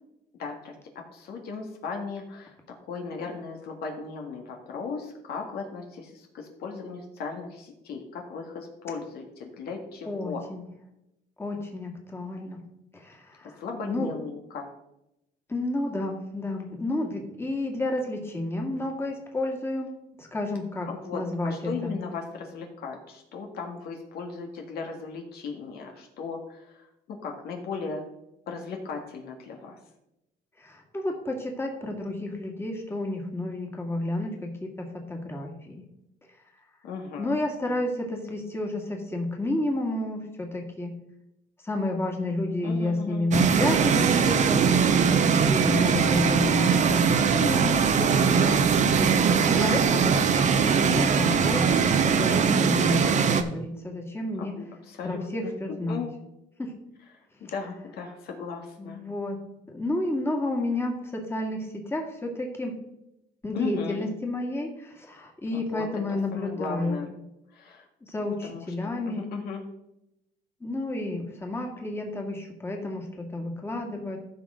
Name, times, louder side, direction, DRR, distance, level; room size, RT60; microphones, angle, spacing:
voice 1, 0.4-2.6 2.8-10.4 13.6-14.6 20.9-28.0 28.5-29.8 36.8-37.3 42.6-43.3 49.0-49.9 54.3-55.5 55.9-56.1 57.4-59.0 63.5-64.1 65.5-65.8 66.3-67.1 67.5-67.9 68.2-68.7 69.0-69.6, left 4 dB, 70° left, 2 dB, 1.7 m, -37 dB
voice 2, 10.0-10.6 11.4-12.6 12.9-13.6 13.8-14.1 15.5-19.9 20.2-21.5 21.8-21.9 30.6-35.8 37.2-41.0 41.6-44.6 45.2-48.5 49.4-50.1 50.8-54.5 55.0-56.0 56.6-56.7 58.8-59.4 59.7-62.8 63.4-67.0 68.0-69.3 70.6-74.2, left 1 dB, 15° left, 1 dB, 1.9 m, -31 dB
sound 1, 43.3-53.4, right 6 dB, 45° right, 0.8 m, -21 dB
14.5 x 5.6 x 3.7 m, 0.87 s
cardioid pair, 110°, 17 cm